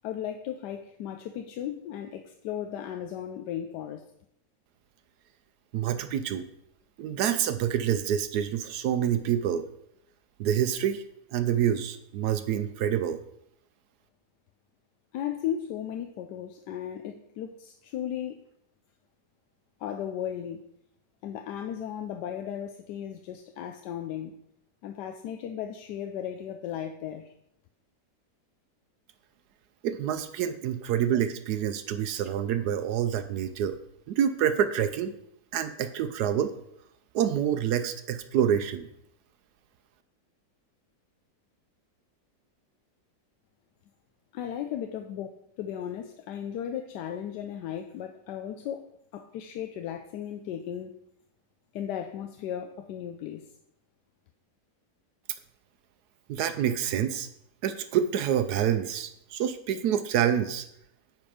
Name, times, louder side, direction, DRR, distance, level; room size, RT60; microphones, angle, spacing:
voice 1, 0.0-4.0 15.1-18.4 19.8-20.6 21.2-24.4 24.8-27.3 44.3-45.3 45.6-50.9 51.7-53.5, left 9 dB, 80° left, 6 dB, 1.2 m, -36 dB
voice 2, 5.7-6.4 7.0-9.7 10.4-11.0 11.3-13.2 29.8-33.8 34.1-35.1 35.5-36.5 37.1-38.9 56.3-57.3 57.6-60.7, right 9 dB, 75° right, 10 dB, 1.1 m, -27 dB
9.3 x 4.2 x 4.9 m, 0.76 s
omnidirectional pair, 1.8 m